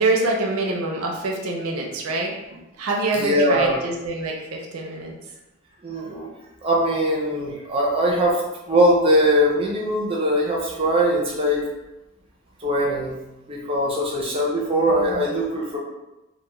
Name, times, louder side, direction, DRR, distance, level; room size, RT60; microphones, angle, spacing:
voice 1, 0.0-5.1 14.7-15.2, right 2 dB, 85° right, 0 dB, 0.5 m, -26 dB
voice 2, 3.1-3.8 5.8-6.3 6.6-8.4 8.7-11.7 12.6-13.2 13.5-15.8, equal, 25° right, -2 dB, 0.4 m, -21 dB
2.2 x 2.1 x 2.9 m, 1.0 s
head